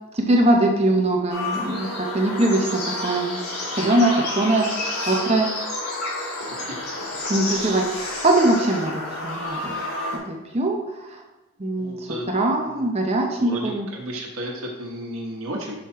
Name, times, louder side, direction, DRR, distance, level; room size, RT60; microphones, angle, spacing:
voice 1, 0.1-3.4 3.7-4.7 5.1-5.5 7.3-7.8 8.2-9.8 10.1-10.8 11.1-11.2 11.6-13.9, right 1 dB, 30° right, 1 dB, 0.6 m, -22 dB
sound 1, 1.3-10.2, left 2 dB, 80° left, 2.2 m, -30 dB
voice 2, 7.5-8.0 11.7-12.3 12.6-12.8 13.4-15.8, right 1 dB, 70° right, 0 dB, 1.3 m, -33 dB
6.4 x 4.4 x 4.6 m, 1.0 s
head